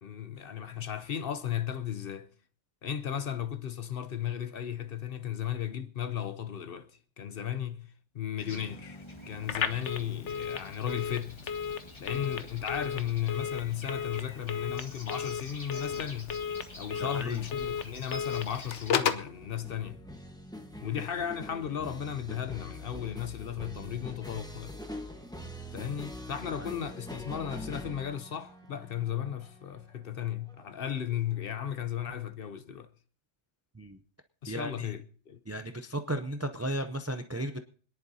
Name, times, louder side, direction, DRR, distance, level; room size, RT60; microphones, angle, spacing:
voice 1, 0.0-2.3 2.8-6.9 7.2-7.8 8.1-11.3 12.0-16.4 16.8-20.0 20.8-24.7 25.7-32.9 34.4-35.4, left 9 dB, 55° left, 0.8 m, -35 dB
sound 1, 8.4-18.9, left 2 dB, 25° left, 1.3 m, -48 dB
Telephone, 9.4-19.3, left 7 dB, 70° left, 1.1 m, -34 dB
sound 2, 16.4-31.5, left 1 dB, 5° left, 1.1 m, -45 dB
voice 2, 17.0-17.4 26.6-26.7 33.7-34.0 34.5-34.9 35.5-37.6, right 1 dB, 25° right, 0.3 m, -35 dB
26.0 x 10.5 x 2.8 m
omnidirectional pair, 1.3 m